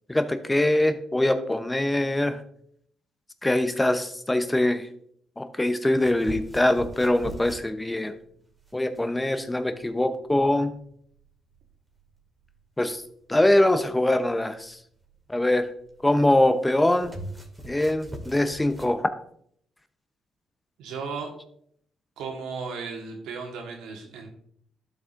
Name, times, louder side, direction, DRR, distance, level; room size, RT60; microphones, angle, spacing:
voice 1, 0.1-2.4 3.4-4.9 5.4-8.1 8.7-10.7 12.8-13.0 13.3-14.8 15.3-15.7 16.0-17.1 17.7-19.1, left 1 dB, 15° left, 9 dB, 0.8 m, -23 dB
sound 1, 5.9-19.0, right 1 dB, 20° right, 2.1 m, -44 dB
voice 2, 20.8-21.3 22.2-24.3, right 5 dB, 75° right, 2 dB, 1.5 m, -35 dB
12.5 x 5.2 x 2.6 m, 0.67 s
hypercardioid pair, 50°, 0 cm